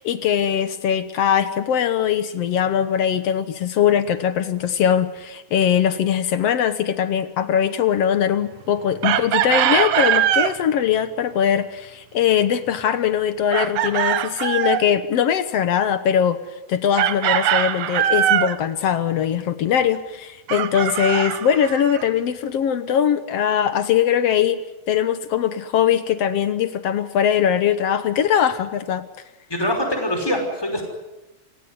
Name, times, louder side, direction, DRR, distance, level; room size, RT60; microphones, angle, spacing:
voice 1, 0.0-16.4 16.7-24.6 24.9-29.1, left 9 dB, 65° left, 12 dB, 1.9 m, -21 dB
Chicken rooster, 9.0-10.6 13.5-14.9 17.0-18.6 20.5-22.0, right 11 dB, 80° right, 2.4 m, -21 dB
voice 2, 29.5-30.8, equal, 5° left, 3 dB, 5.3 m, -23 dB
28.5 x 17.0 x 9.6 m, 1.0 s
omnidirectional pair, 3.3 m